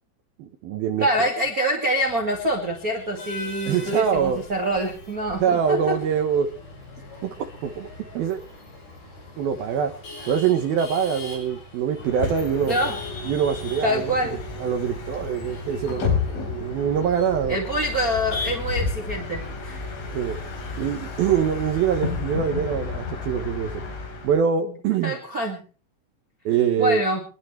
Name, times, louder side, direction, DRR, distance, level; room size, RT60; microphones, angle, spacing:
voice 1, 0.4-1.3 3.7-4.4 5.4-6.5 7.2-7.4 7.6-8.4 9.4-9.9 10.3-12.7 13.3-14.1 14.6-17.6 20.1-20.4 20.8-23.8 24.2-25.2 26.5-27.0, right 7 dB, 70° right, 5 dB, 2.4 m, -24 dB
voice 2, 1.0-6.0 12.7-13.0 13.8-14.4 17.5-19.8 25.0-25.6 26.8-27.2, equal, 35° right, 2 dB, 1.4 m, -25 dB
Male speech man speaking / Laughter / Chatter, 2.0-19.5, left 2 dB, 50° left, 7.8 m, -39 dB
Bus, 12.0-24.4, left 5 dB, 75° left, 6.2 m, -32 dB
27.0 x 12.0 x 3.3 m, 0.37 s
omnidirectional pair, 5.5 m